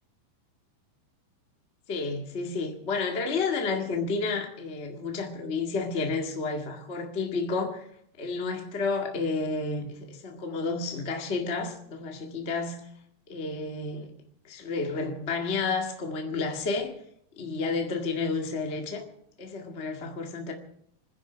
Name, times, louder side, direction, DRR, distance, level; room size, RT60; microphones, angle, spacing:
voice 1, 1.9-7.9 8.2-12.9 13.3-14.1 14.4-16.9 17.4-19.0 19.4-20.5, left 4 dB, 30° left, 1.3 m, -31 dB
26.0 x 10.5 x 5.1 m
omnidirectional pair, 4.4 m